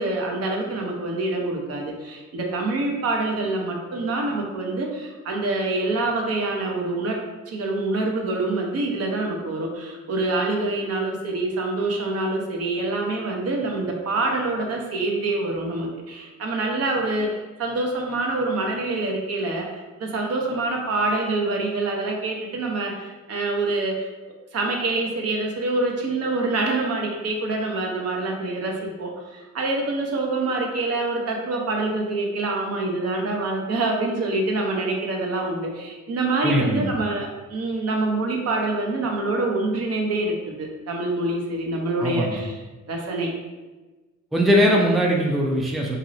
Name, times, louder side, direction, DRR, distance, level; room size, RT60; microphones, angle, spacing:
voice 1, 0.0-7.2 7.5-24.1 24.5-42.6 42.9-43.3, right 2 dB, 55° right, 1 dB, 0.7 m, -26 dB
voice 2, 36.4-36.9 42.0-42.4 44.3-46.0, equal, ahead, -1 dB, 0.4 m, -20 dB
3.0 x 2.7 x 2.6 m, 1.2 s
cardioid pair, 90°, 30 cm